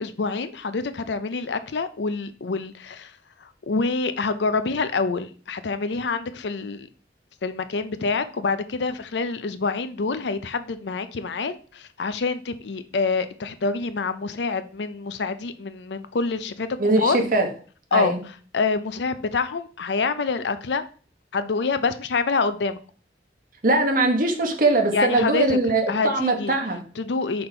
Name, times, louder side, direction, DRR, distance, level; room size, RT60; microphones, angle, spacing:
voice 1, 0.0-3.1 3.7-6.9 7.4-16.7 17.0-17.2 17.9-18.2 18.5-20.8 21.3-22.8 24.9-25.6 25.9-26.6 27.0-27.5, left 4 dB, 70° left, 0.5 m, -26 dB
voice 2, 16.8-17.5 17.9-18.2 23.6-26.8, right 2 dB, 50° right, 1.2 m, -21 dB
5.2 x 4.3 x 4.3 m
head